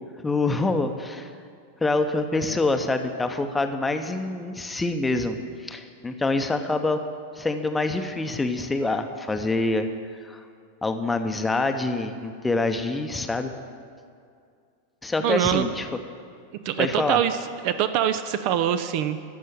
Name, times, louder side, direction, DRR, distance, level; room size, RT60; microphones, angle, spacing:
voice 1, 0.2-1.3 1.8-5.4 5.6-7.0 7.3-9.9 10.2-10.4 10.8-13.5 15.0-15.9 16.8-17.2, left 2 dB, 10° left, 7 dB, 0.8 m, -26 dB
voice 2, 15.2-15.7 16.6-17.4 17.6-19.2, right 10 dB, 45° right, 11 dB, 0.5 m, -23 dB
14.0 x 5.5 x 8.9 m, 2.3 s
figure-of-eight pair, 90°, 0 cm